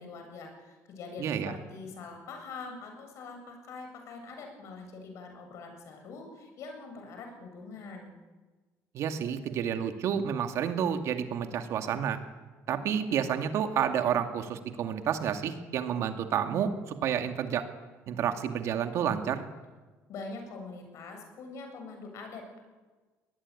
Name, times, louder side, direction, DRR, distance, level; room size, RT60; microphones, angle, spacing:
voice 1, 0.0-8.1 20.1-22.6, left 4 dB, 60° left, 4 dB, 7.6 m, -44 dB
voice 2, 1.2-1.5 8.9-12.2 12.7-17.6 18.1-19.5, right 8 dB, 60° right, 7 dB, 2.4 m, -30 dB
22.5 x 19.5 x 9.9 m, 1.3 s
cardioid pair, 125°, 6 cm